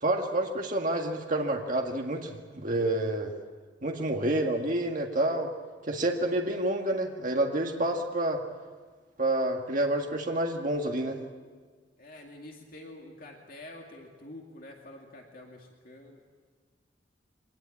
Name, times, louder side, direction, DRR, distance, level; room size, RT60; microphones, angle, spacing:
voice 1, 0.0-3.3 3.8-5.5 5.9-8.4 9.2-11.2, right 1 dB, 45° right, 1 dB, 1.8 m, -28 dB
voice 2, 12.0-16.2, left 1 dB, 50° left, 0 dB, 2.4 m, -47 dB
24.0 x 19.0 x 8.7 m, 1.5 s
head